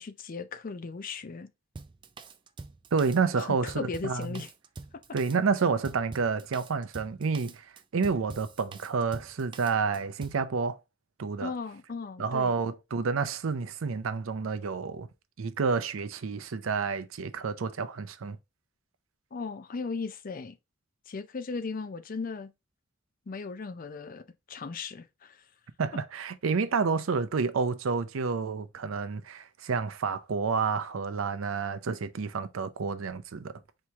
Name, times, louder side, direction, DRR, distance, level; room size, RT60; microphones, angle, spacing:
voice 1, 0.0-1.5 3.4-4.5 11.4-12.5 19.3-20.6 21.1-22.5 23.3-25.4, left 4 dB, 45° left, 0.5 m, -37 dB
Drum kit, 1.8-10.4, right 3 dB, 25° right, 0.3 m, -46 dB
voice 2, 2.9-4.4 5.1-10.8 11.2-11.5 12.2-15.1 15.4-18.4 25.8-33.5, right 5 dB, 80° right, 0.5 m, -29 dB
4.5 x 2.9 x 3.4 m
head